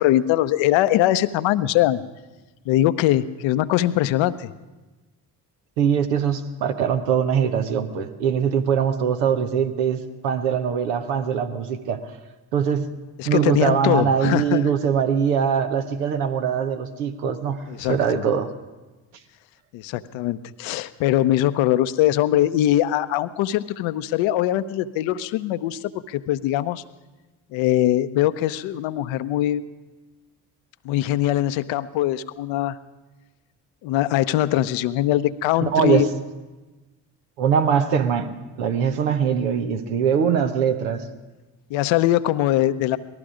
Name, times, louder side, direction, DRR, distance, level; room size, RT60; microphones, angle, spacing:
voice 1, 0.0-2.0 2.7-4.5 13.2-14.7 17.7-18.0 19.7-26.8 27.5-29.6 30.8-32.8 33.8-36.1 41.7-43.0, left 13 dB, 75° left, 14 dB, 0.7 m, -22 dB
voice 2, 5.8-12.0 12.5-12.9 13.2-18.5 35.7-36.1 37.4-41.1, right 7 dB, 90° right, 7 dB, 1.0 m, -22 dB
Sigh, 17.5-18.0, right 3 dB, 40° right, 2.6 m, -45 dB
18.5 x 14.0 x 5.0 m, 1.2 s
hypercardioid pair, 45°, 47 cm